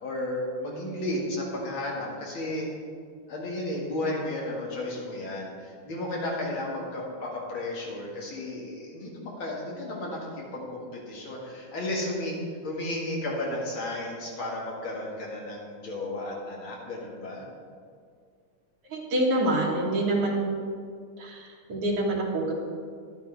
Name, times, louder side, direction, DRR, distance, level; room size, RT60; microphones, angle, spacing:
voice 1, 0.0-2.7 3.3-17.4, left 1 dB, 65° left, -3 dB, 2.8 m, -33 dB
voice 2, 18.9-20.5 21.2-22.5, right 1 dB, 90° right, -4 dB, 2.5 m, -26 dB
11.0 x 10.5 x 3.5 m, 2.1 s
omnidirectional pair, 2.4 m